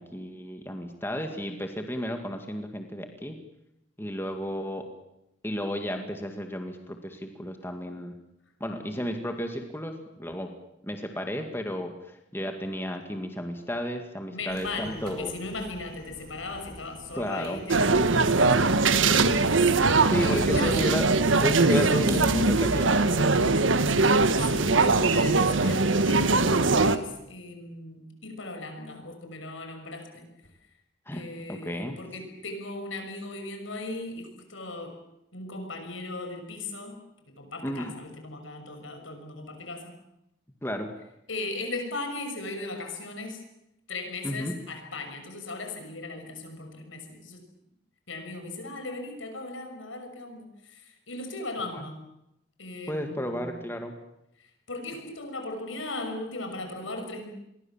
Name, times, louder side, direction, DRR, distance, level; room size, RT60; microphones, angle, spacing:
voice 1, 0.0-3.4 4.0-4.9 5.4-8.1 8.6-10.5 10.8-15.3 17.1-17.6 20.1-21.1 21.4-23.4 31.1-31.2 31.5-32.0 37.6-37.9 40.6-40.9 44.2-44.5 51.7-51.9 52.9-53.9, equal, 10° left, 5 dB, 2.1 m, -33 dB
voice 2, 14.3-19.5 20.2-20.8 21.8-22.1 23.9-30.3 31.1-35.0 35.3-37.0 37.4-40.0 41.3-43.4 43.9-47.4 48.1-52.0 52.6-53.6 54.7-57.3, left 2 dB, 85° left, 5 dB, 6.2 m, -37 dB
sound 1, 14.5-22.3, right 2 dB, 50° right, 5.2 m, -43 dB
sound 2, 17.7-27.0, right 3 dB, 80° right, 1.4 m, -21 dB
27.5 x 22.5 x 7.4 m, 0.84 s
head